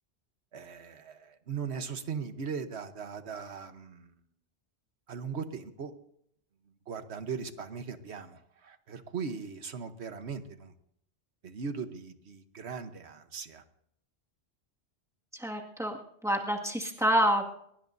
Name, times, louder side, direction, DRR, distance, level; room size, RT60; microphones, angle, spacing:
voice 1, 0.5-4.1 5.1-5.9 6.9-10.7 11.4-13.6, right 6 dB, 80° right, 9 dB, 1.4 m, -39 dB
voice 2, 15.3-16.0 16.2-17.5, equal, 5° right, -1 dB, 1.9 m, -27 dB
23.0 x 21.5 x 2.7 m, 0.72 s
omnidirectional pair, 1.1 m